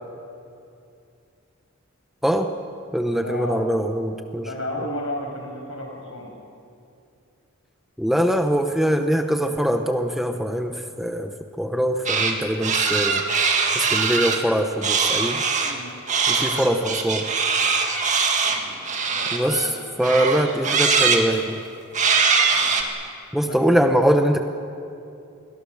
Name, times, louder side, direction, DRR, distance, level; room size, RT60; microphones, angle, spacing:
voice 1, 2.2-2.5 2.9-4.5 8.0-13.2 13.7-15.4 16.3-17.3 19.3-21.6 23.3-24.4, equal, ahead, 5 dB, 0.9 m, -22 dB
voice 2, 3.1-3.6 4.4-6.3 15.6-16.0 16.3-17.0 18.4-18.8 19.1-20.1 22.5-22.8 23.4-23.9, left 1 dB, 70° left, 1 dB, 6.1 m, -34 dB
sound 1, 12.1-12.4 12.6-14.4 14.8-15.7 16.1-19.7 20.0-21.2 21.9-22.8, right 5 dB, 35° right, 2.0 m, -22 dB
29.5 x 21.5 x 6.6 m, 2.6 s
head